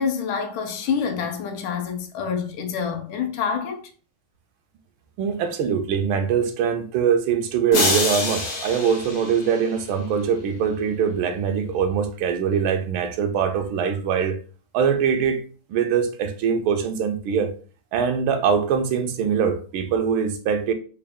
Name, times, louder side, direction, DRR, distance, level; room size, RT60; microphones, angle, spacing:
voice 1, 0.0-3.8, left 6 dB, 80° left, 1.5 m, -27 dB
voice 2, 5.2-14.4 14.7-15.4 15.7-17.5 17.9-20.7, right 7 dB, 85° right, 1.4 m, -23 dB
sound 1, 7.7-10.1, left 2 dB, 55° left, 0.9 m, -26 dB
4.2 x 2.2 x 3.4 m
omnidirectional pair, 2.2 m